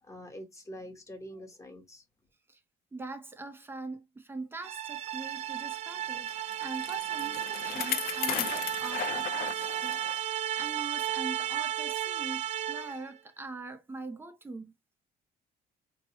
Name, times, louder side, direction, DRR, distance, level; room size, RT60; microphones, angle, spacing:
voice 1, 0.0-2.0, equal, 20° left, 1.3 m, -45 dB
voice 2, 2.9-14.7, right 3 dB, 15° right, 0.8 m, -43 dB
sound 1, 4.6-13.1, right 11 dB, 45° right, 0.4 m, -34 dB
Bicycle, 6.3-10.2 10.6-10.7 11.6-11.7, left 11 dB, 65° left, 0.5 m, -36 dB
4.4 x 3.1 x 2.9 m
cardioid pair, 110°, 17 cm